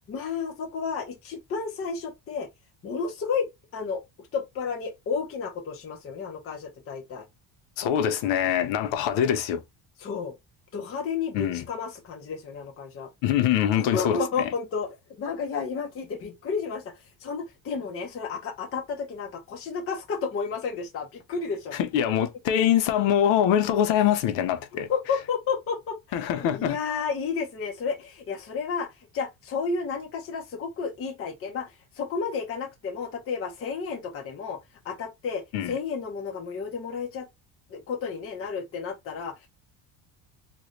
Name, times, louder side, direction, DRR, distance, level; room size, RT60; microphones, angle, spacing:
voice 1, 0.1-2.5 2.8-4.0 4.3-7.3 10.0-10.4 10.7-13.1 13.7-21.8 24.7-34.6 34.8-37.3 37.7-39.5, left 5 dB, 30° left, 0.8 m, -32 dB
voice 2, 7.8-9.6 11.3-11.6 13.2-14.5 21.8-24.9 26.1-26.8 35.5-35.7, left 10 dB, 70° left, 0.8 m, -24 dB
3.0 x 2.6 x 3.1 m
cardioid pair, 170°, 47 cm